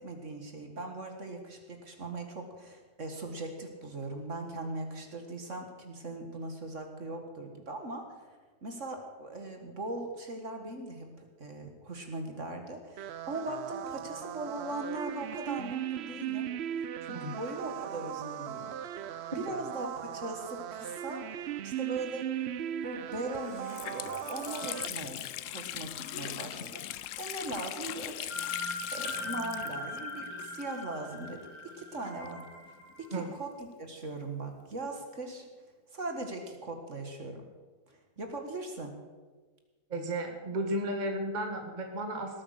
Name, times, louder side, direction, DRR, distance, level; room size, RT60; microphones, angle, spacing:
voice 1, 0.0-16.5 17.0-19.1 19.4-22.3 22.8-28.3 28.9-32.4 33.1-35.5 35.9-37.4 37.9-38.9, right 2 dB, 50° right, 4 dB, 2.1 m, -40 dB
sound 1, 13.0-24.9, right 11 dB, 70° right, 0.6 m, -38 dB
Water tap faucet, 22.9-23.0 23.3-31.1 31.3-31.4 32.3-33.8, left 12 dB, 65° left, 0.8 m, -40 dB
sound 2, 25.9-27.0 28.3-33.2, left 2 dB, 80° left, 5.5 m, -40 dB
voice 2, 39.9-42.4, right 1 dB, 30° right, 3 dB, 1.6 m, -34 dB
19.0 x 8.7 x 6.6 m, 1.3 s
omnidirectional pair, 1.8 m